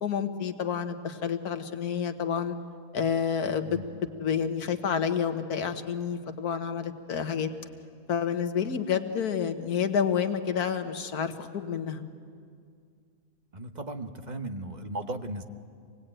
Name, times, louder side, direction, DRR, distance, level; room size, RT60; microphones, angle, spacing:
voice 1, 0.0-2.6 2.9-3.8 4.2-7.5 8.1-12.0, left 7 dB, 90° left, 8 dB, 1.7 m, -29 dB
voice 2, 13.5-15.4, right 1 dB, 30° right, 6 dB, 1.1 m, -36 dB
26.5 x 19.0 x 9.0 m, 2.2 s
omnidirectional pair, 1.6 m